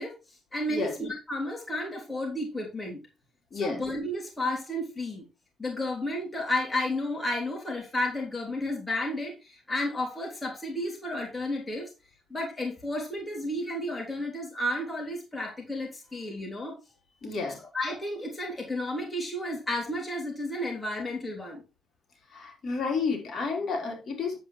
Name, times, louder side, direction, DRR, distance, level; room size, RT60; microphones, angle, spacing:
voice 1, 0.0-3.0 3.5-5.2 5.6-11.9 12.3-16.8 17.7-21.6, left 1 dB, 20° left, 0 dB, 3.2 m, -32 dB
voice 2, 3.5-3.8 17.2-17.6 22.3-24.4, left 4 dB, 50° left, 1 dB, 3.9 m, -31 dB
9.2 x 7.9 x 3.2 m, 0.29 s
cardioid pair, 90°, 0 cm